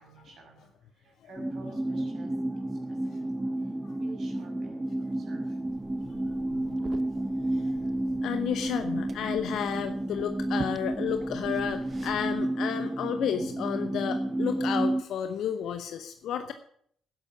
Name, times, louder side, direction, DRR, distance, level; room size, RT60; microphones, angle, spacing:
voice 1, 0.0-2.3 2.7-3.1 3.9-4.9 5.1-5.6, right 1 dB, 60° right, 1 dB, 6.5 m, -50 dB
sound 1, 1.4-15.0, right 1 dB, 15° right, 1.0 m, -31 dB
Liquid, 5.6-12.4, right 5 dB, 45° right, 0.9 m, -47 dB
voice 2, 6.5-7.7 8.2-16.5, left 9 dB, 65° left, 9 dB, 0.9 m, -32 dB
12.0 x 11.0 x 7.2 m, 0.63 s
hypercardioid pair, 45°, 0 cm